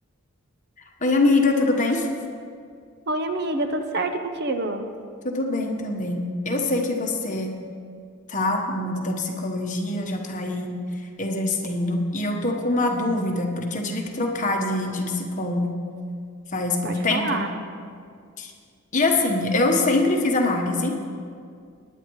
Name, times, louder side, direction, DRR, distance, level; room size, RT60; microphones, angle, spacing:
voice 1, 1.0-2.1 5.2-7.5 8.3-10.7 11.2-15.7 16.5-17.4 18.4-18.5 18.9-21.0, left 2 dB, 35° left, 1 dB, 1.2 m, -24 dB
voice 2, 3.1-4.9 16.8-17.5, right 2 dB, 45° right, 7 dB, 0.6 m, -27 dB
19.0 x 10.0 x 3.1 m, 2.2 s
head